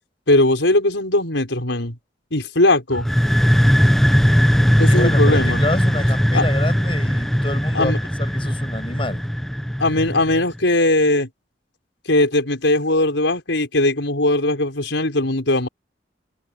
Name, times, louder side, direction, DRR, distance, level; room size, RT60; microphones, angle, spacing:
voice 1, 0.3-2.0 2.3-3.1 4.8-5.6 6.3-6.4 7.7-8.0 9.8-11.3 12.1-15.7, left 2 dB, 80° left, 5.6 m, -19 dB
sound 1, 2.9-10.6, equal, ahead, 0.7 m, -18 dB
voice 2, 4.9-7.9 8.2-9.2, left 2 dB, 30° left, 7.2 m, -28 dB
head